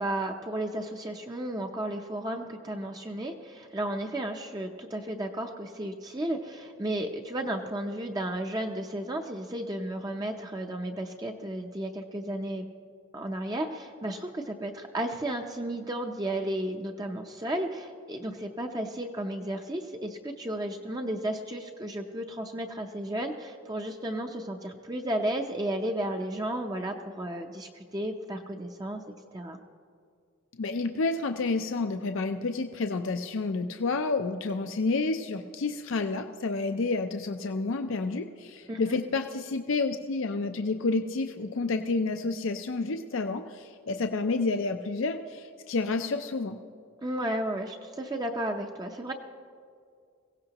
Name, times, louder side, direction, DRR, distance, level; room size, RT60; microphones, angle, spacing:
voice 1, 0.0-12.7 13.1-29.0 29.3-29.6 38.7-39.0 47.0-49.1, right 1 dB, 20° right, 3 dB, 0.5 m, -33 dB
voice 2, 30.6-46.6, left 3 dB, 70° left, 6 dB, 0.5 m, -30 dB
22.0 x 16.5 x 2.9 m, 2.2 s
head